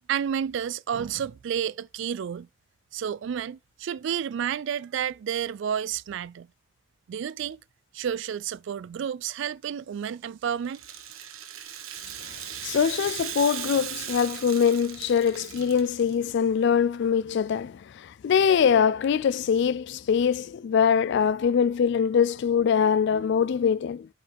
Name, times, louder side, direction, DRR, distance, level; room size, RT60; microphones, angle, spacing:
voice 1, 0.1-2.5 2.9-6.5 7.1-7.6 7.9-10.8, right 8 dB, 60° right, 0.3 m, -30 dB
Rattle (instrument), 10.6-16.1, right 9 dB, 85° right, 1.3 m, -37 dB
voice 2, 12.6-24.1, left 7 dB, 55° left, 0.3 m, -23 dB
8.6 x 5.1 x 3.4 m
head